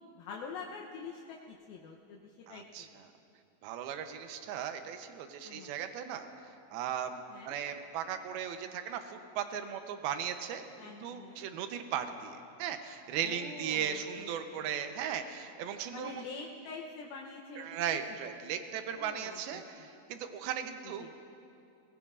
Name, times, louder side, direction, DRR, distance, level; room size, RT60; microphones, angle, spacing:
voice 1, 0.0-3.0 5.4-5.8 7.3-7.5 10.8-11.4 13.2-14.7 15.9-17.8 18.9-19.9 21.0-21.1, left 4 dB, 75° left, -1 dB, 2.4 m, -46 dB
voice 2, 2.5-3.1 3.6-6.3 6.7-16.2 17.6-21.1, right 8 dB, 75° right, 7 dB, 2.6 m, -37 dB
22.0 x 20.0 x 2.5 m, 2.7 s
omnidirectional pair, 4.7 m